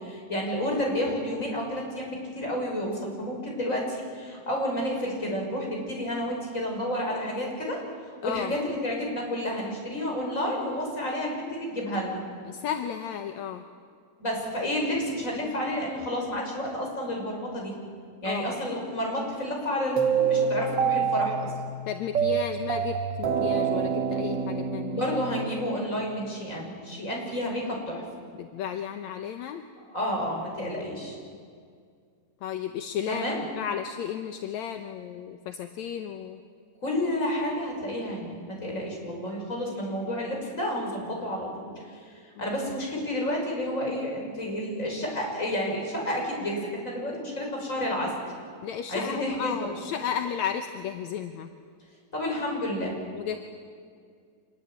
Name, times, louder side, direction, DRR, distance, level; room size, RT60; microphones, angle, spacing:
voice 1, 0.0-7.8 8.2-12.2 14.2-17.7 18.2-21.5 24.9-28.0 29.9-31.2 33.1-33.4 36.8-48.1 48.9-49.7 52.1-52.9, left 1 dB, 20° left, -1 dB, 6.1 m, -30 dB
voice 2, 8.2-8.5 12.5-13.6 18.2-18.6 21.9-25.0 28.4-29.6 32.4-33.2 33.6-36.4 42.4-42.5 48.6-51.5 53.1-53.4, left 8 dB, 70° left, 7 dB, 1.9 m, -33 dB
sound 1, 20.0-26.1, right 6 dB, 55° right, 1.2 m, -27 dB
26.0 x 21.5 x 9.0 m, 2.1 s
omnidirectional pair, 4.2 m